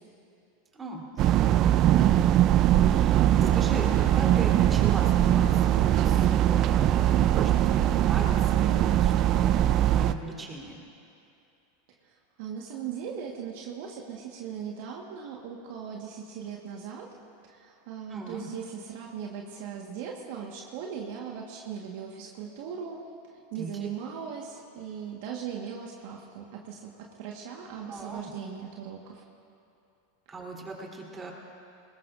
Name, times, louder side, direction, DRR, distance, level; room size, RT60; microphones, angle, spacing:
voice 1, 0.8-1.7 2.8-10.8 18.1-18.5 23.6-23.7 27.8-28.2 30.3-31.3, right 3 dB, 20° right, -2 dB, 3.5 m, -39 dB
sound 1, 1.2-10.1, right 12 dB, 45° right, 0.5 m, -21 dB
voice 2, 12.0-17.1 17.4-23.0 23.3-29.2, right 7 dB, 65° right, 0 dB, 1.5 m, -39 dB
22.0 x 20.0 x 2.6 m, 2.7 s
hypercardioid pair, 100°, 0 cm